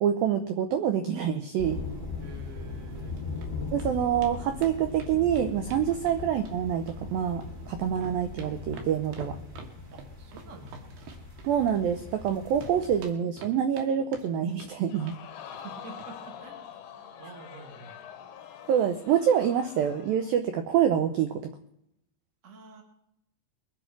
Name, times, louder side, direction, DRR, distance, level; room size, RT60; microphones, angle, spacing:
voice 1, 0.0-1.8 3.7-9.4 11.5-15.2 18.7-21.4, right 9 dB, 85° right, 8 dB, 2.0 m, -26 dB
sound 1, 1.6-13.1, left 4 dB, 15° right, 2.2 m, -39 dB
voice 2, 2.2-3.2 5.9-6.0 9.9-10.8 15.4-17.9 22.4-22.8, right 3 dB, 40° right, 3 dB, 1.0 m, -48 dB
sound 2, 3.0-3.5 3.8-3.9 4.2-4.3 4.6-6.6 6.9-7.6 7.8-12.3 12.6-13.9 14.1-14.7 15.0-15.2 15.5-15.7 16.0-16.1 16.4-16.5, right 4 dB, 70° right, 3.4 m, -47 dB
Crowd, 14.9-20.3 20.8-20.9, left 8 dB, 75° left, 1.8 m, -45 dB
22.0 x 8.4 x 6.0 m, 0.79 s
omnidirectional pair, 5.2 m